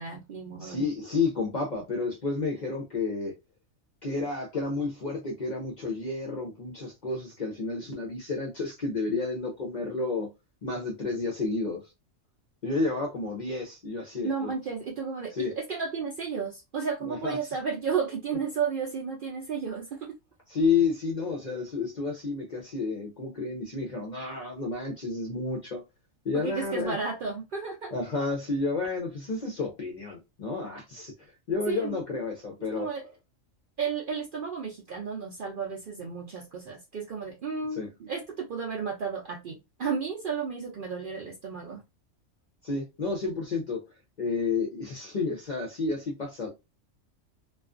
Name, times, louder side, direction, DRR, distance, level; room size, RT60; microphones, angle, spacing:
voice 1, 0.0-0.8 14.2-20.1 26.3-27.9 31.7-32.0 32.7-33.1 33.8-41.8, right 5 dB, 65° right, 0.5 m, -33 dB
voice 2, 0.6-3.3 4.0-10.3 10.6-11.8 12.6-14.5 15.4-15.5 17.0-17.4 20.5-25.8 26.2-26.9 27.9-31.1 31.5-32.9 37.8-37.9 42.6-43.8 44.2-46.5, left 4 dB, 50° left, 0.5 m, -30 dB
2.4 x 2.3 x 2.4 m
omnidirectional pair, 1.3 m